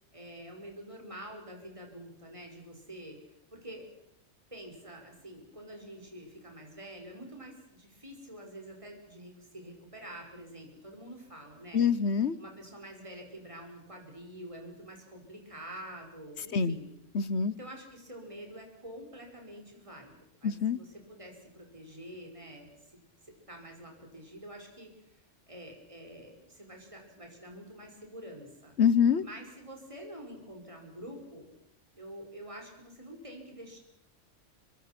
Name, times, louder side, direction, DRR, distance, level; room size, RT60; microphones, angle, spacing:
voice 1, 0.1-3.9 4.5-11.8 12.4-16.9 17.5-28.7 29.2-31.5 31.9-33.8, right 1 dB, 25° right, 2 dB, 5.6 m, -47 dB
voice 2, 11.7-12.4 16.5-16.8 17.1-17.5 20.4-20.8 28.8-29.2, left 7 dB, 60° left, 17 dB, 1.3 m, -25 dB
26.5 x 24.5 x 6.1 m, 0.80 s
omnidirectional pair, 1.3 m